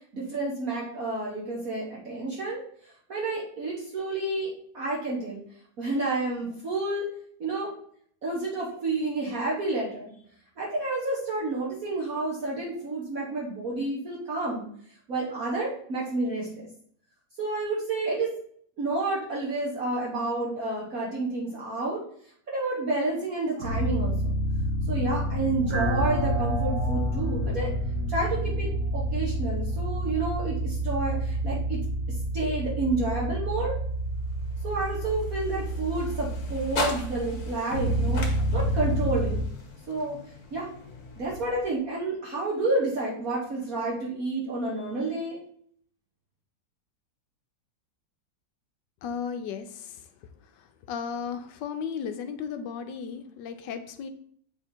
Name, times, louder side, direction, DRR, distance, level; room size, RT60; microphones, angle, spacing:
voice 1, 0.1-2.6 3.1-5.4 5.8-7.1 7.4-7.7 8.2-10.1 10.6-14.7 15.1-16.7 17.4-18.3 18.8-22.0 22.5-24.3 24.9-27.7 28.1-31.8 32.3-33.7 34.6-38.3 38.5-39.4 39.9-40.2 40.5-40.7 41.2-45.4, right 2 dB, 50° right, -5 dB, 1.6 m, -30 dB
sound 1, 23.6-39.4, right 1 dB, 90° right, 2.3 m, -28 dB
sound 2, 33.7-42.0, left 4 dB, 55° left, 1.5 m, -39 dB
voice 2, 49.0-50.1 50.4-54.1, left 7 dB, 75° left, 9 dB, 1.2 m, -35 dB
7.7 x 3.6 x 4.4 m, 0.62 s
omnidirectional pair, 2.0 m